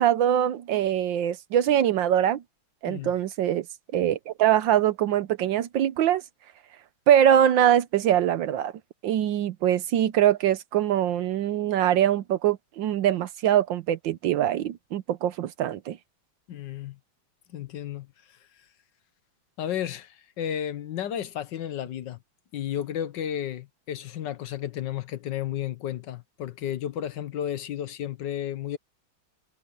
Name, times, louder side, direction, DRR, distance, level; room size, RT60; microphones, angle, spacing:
voice 1, 0.0-2.4 2.8-3.7 3.9-6.2 7.1-8.7 9.0-16.0, right 10 dB, 75° right, 1.4 m, -23 dB
voice 2, 16.5-17.0 17.5-18.1 19.6-22.2 22.5-28.8, left 10 dB, 65° left, 1.5 m, -32 dB
omnidirectional pair, 2.2 m